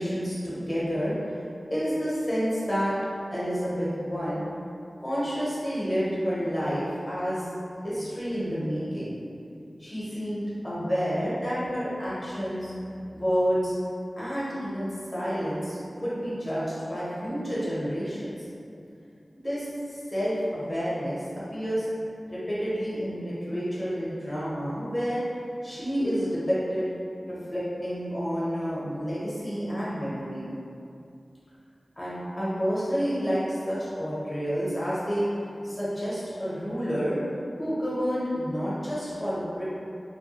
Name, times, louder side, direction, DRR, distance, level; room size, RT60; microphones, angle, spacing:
voice 1, 0.0-1.4 1.7-3.0 3.3-4.4 5.0-9.2 9.8-12.7 13.1-13.7 14.2-18.4 19.3-21.9 22.3-25.2 25.6-26.9 27.3-30.5 32.0-35.3 35.6-37.2 37.6-39.6, equal, 25° left, -10 dB, 0.9 m, -29 dB
2.2 x 2.2 x 2.8 m, 2.5 s
wide cardioid pair, 60°, 0 cm